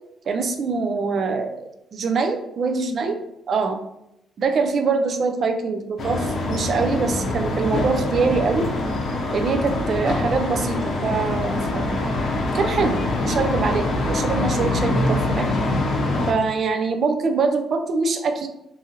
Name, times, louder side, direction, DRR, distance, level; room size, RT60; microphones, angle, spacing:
voice 1, 0.3-3.2 3.5-3.8 4.4-8.7 9.3-12.0 12.5-15.5 16.3-18.5, right 4 dB, 55° right, 7 dB, 0.4 m, -24 dB
sound 1, 6.0-16.3, left 2 dB, 60° left, 0.6 m, -24 dB
2.6 x 2.5 x 2.8 m, 0.84 s
cardioid pair, 90°, 0 cm